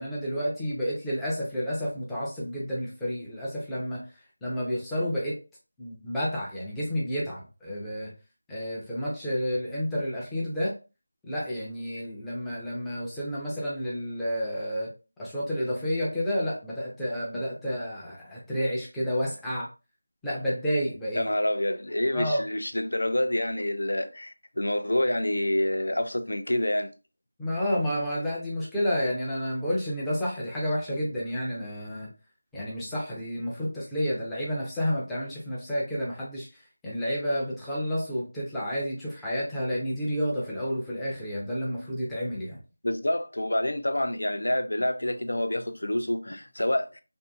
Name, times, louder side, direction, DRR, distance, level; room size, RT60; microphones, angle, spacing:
voice 1, 0.0-4.1 4.4-5.4 5.8-8.1 8.5-10.8 11.3-14.9 15.2-19.7 20.2-21.3 22.1-22.4 27.4-32.1 32.5-36.5 36.8-42.6, equal, 5° left, 0.5 m, -30 dB
voice 2, 21.1-26.9 42.8-47.0, left 1 dB, 85° left, 0.4 m, -27 dB
2.6 x 2.6 x 2.2 m
figure-of-eight pair, 175°, 0 cm